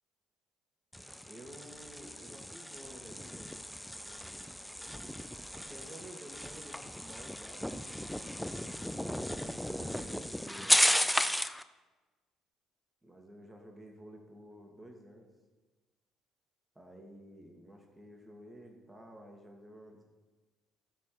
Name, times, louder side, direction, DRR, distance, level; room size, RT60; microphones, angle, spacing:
sound 1, 0.9-11.6, equal, 5° left, 0.5 m, -34 dB
voice 1, 1.2-3.7 4.0-4.5 5.5-8.3 9.3-11.2 13.0-15.3 16.8-20.0, right 1 dB, 20° right, 2 dB, 2.1 m, -52 dB
13.0 x 4.4 x 6.8 m, 1.3 s
hypercardioid pair, 50°, 0 cm